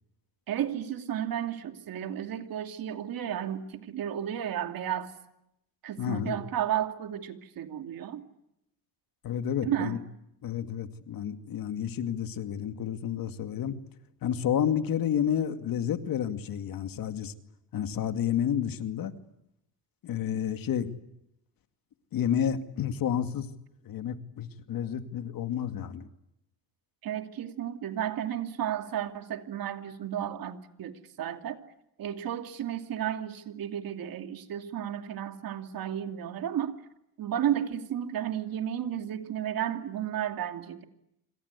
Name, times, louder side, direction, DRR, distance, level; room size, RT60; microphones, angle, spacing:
voice 1, 0.5-5.1 5.8-8.2 9.6-10.0 27.0-31.6 32.0-36.8 37.2-40.8, right 10 dB, 70° right, 7 dB, 2.8 m, -33 dB
voice 2, 6.0-6.4 9.2-10.0 10.4-13.8 14.2-17.3 17.7-19.1 20.0-20.9 22.1-23.5 23.8-26.1, left 9 dB, 70° left, 8 dB, 2.4 m, -30 dB
27.0 x 26.5 x 8.3 m, 0.81 s
cardioid pair, 115°, 36 cm